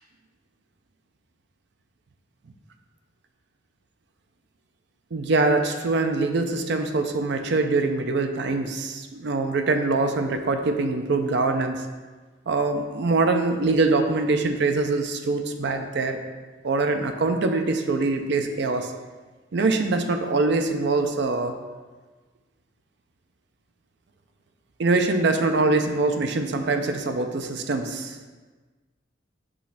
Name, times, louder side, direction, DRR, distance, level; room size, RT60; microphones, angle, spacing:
voice 1, 5.1-11.8 12.5-16.2 16.6-18.9 19.5-21.5 24.8-28.2, right 3 dB, 60° right, 6 dB, 0.5 m, -23 dB
6.2 x 3.1 x 5.7 m, 1.3 s
head